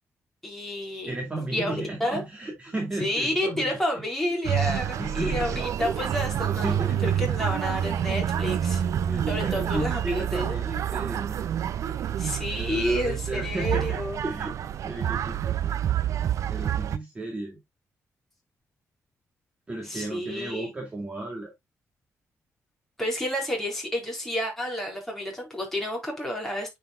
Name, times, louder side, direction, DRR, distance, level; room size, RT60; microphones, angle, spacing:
voice 1, 0.4-1.1 1.5-1.7 2.0-2.2 3.0-8.8 9.3-10.6 12.2-14.2 19.8-20.7 23.0-26.8, left 1 dB, 5° left, 4.8 m, -30 dB
voice 2, 1.1-3.7 5.0-5.6 6.6-7.2 9.1-11.5 12.5-14.6 14.8-15.5 16.5-17.6 19.7-21.5, right 2 dB, 20° right, 2.4 m, -34 dB
sound 1, 4.4-17.0, right 10 dB, 70° right, 0.6 m, -28 dB
9.4 x 5.4 x 2.4 m
cardioid pair, 130°, 6 cm